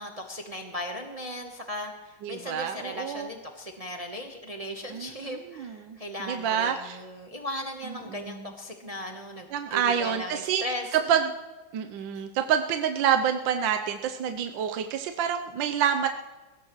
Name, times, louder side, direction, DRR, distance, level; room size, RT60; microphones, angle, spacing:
voice 1, 0.0-11.2, left 1 dB, 25° right, 2 dB, 0.9 m, -37 dB
voice 2, 2.2-3.3 4.9-7.0 7.8-8.5 9.5-10.6 10.9-11.3 11.7-16.1, right 8 dB, 75° right, 6 dB, 1.4 m, -28 dB
20.5 x 17.0 x 3.1 m, 1.2 s
omnidirectional pair, 2.2 m